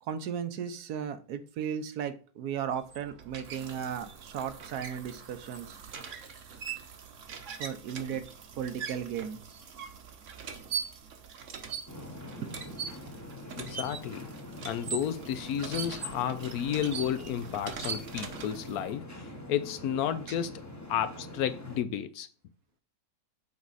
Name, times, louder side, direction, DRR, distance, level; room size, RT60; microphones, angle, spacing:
voice 1, 0.0-5.8 7.5-8.2 8.6-9.4 12.4-12.8, right 8 dB, 75° right, 1.2 m, -36 dB
sound 1, 2.7-18.9, right 7 dB, 55° right, 1.1 m, -41 dB
sound 2, 11.9-21.8, left 1 dB, 15° left, 0.8 m, -44 dB
voice 2, 13.6-14.3 14.6-19.0 19.5-22.3, left 9 dB, 70° left, 1.0 m, -32 dB
7.2 x 4.6 x 4.0 m
omnidirectional pair, 1.7 m